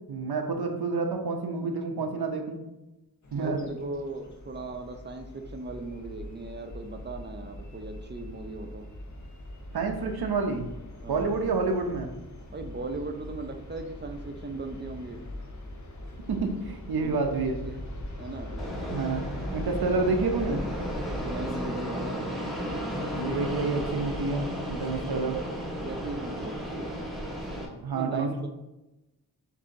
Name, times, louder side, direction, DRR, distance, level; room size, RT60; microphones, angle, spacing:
voice 1, 0.1-2.6 3.3-3.6 9.7-10.7 11.1-12.1 16.3-17.6 18.9-20.6 23.1-25.4 27.8-28.5, right 4 dB, 90° right, 3 dB, 0.6 m, -29 dB
sound 1, 3.2-21.5, left 1 dB, 50° left, 0.7 m, -41 dB
voice 2, 3.3-8.9 11.0-11.5 12.5-15.3 17.0-17.2 17.6-17.8 18.2-18.5 21.2-22.3 25.0-25.1 25.8-27.0 27.9-28.5, right 2 dB, 30° right, 6 dB, 0.5 m, -38 dB
Fixed-wing aircraft airplane, 18.6-27.6, equal, ahead, 1.0 m, -34 dB
6.6 x 2.7 x 2.6 m, 0.98 s
wide cardioid pair, 75°, 37 cm